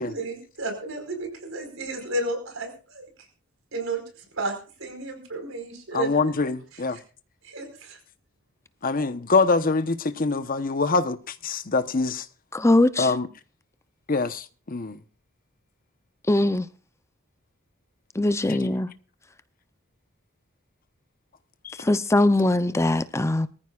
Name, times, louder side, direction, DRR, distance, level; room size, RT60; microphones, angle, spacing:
voice 1, 0.0-3.1 3.7-4.0 4.4-6.3 6.7-6.8 7.4-8.0, right 2 dB, 70° right, 4.7 m, -32 dB
voice 2, 5.9-7.0 8.8-11.2 11.4-12.2 13.0-13.3 14.1-15.0 18.5-18.6 21.6-21.8, left 4 dB, 45° left, 1.0 m, -24 dB
voice 3, 12.5-13.1 16.3-16.7 18.2-18.9 21.9-23.5, left 1 dB, 15° left, 0.6 m, -21 dB
23.0 x 14.5 x 2.4 m
head